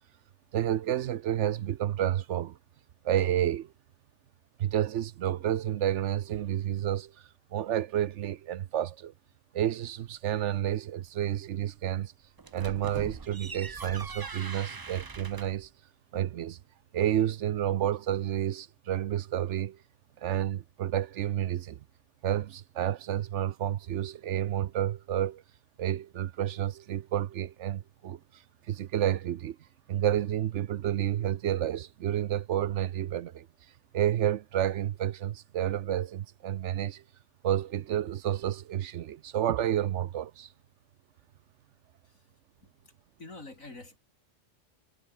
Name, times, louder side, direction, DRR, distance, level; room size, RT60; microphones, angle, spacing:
voice 1, 0.5-2.6 3.0-3.7 4.6-7.1 7.5-9.1 9.5-12.1 12.5-15.7 16.1-16.6 16.9-19.8 20.2-21.8 22.2-25.4 25.8-28.2 28.7-29.6 29.9-33.5 33.9-37.0 37.4-40.5, right 11 dB, 70° right, 0.9 m, -30 dB
sound 1, 12.4-15.7, right 4 dB, 30° right, 0.4 m, -41 dB
voice 2, 42.6-44.0, left 2 dB, 90° left, 5.3 m, -48 dB
omnidirectional pair, 1.4 m